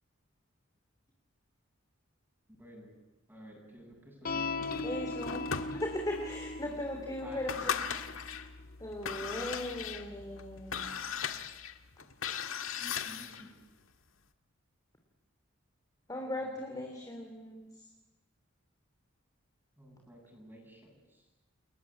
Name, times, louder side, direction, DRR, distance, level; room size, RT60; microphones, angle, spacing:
voice 1, 2.6-2.9 3.3-5.0 7.2-7.7 12.8-13.6 16.2-16.5 19.8-21.2, equal, 10° right, -1 dB, 7.8 m, -53 dB
sound 1, 4.2-10.9, left 3 dB, 45° left, 1.0 m, -41 dB
sound 2, 4.6-6.2 6.7-6.8 7.3-8.5 8.9-13.5, left 7 dB, 85° left, 1.7 m, -38 dB
voice 2, 4.8-5.5 5.8-7.9 8.8-10.8 16.1-17.7, left 1 dB, 20° left, 2 dB, 3.2 m, -38 dB
30.0 x 22.0 x 8.7 m, 1.1 s
head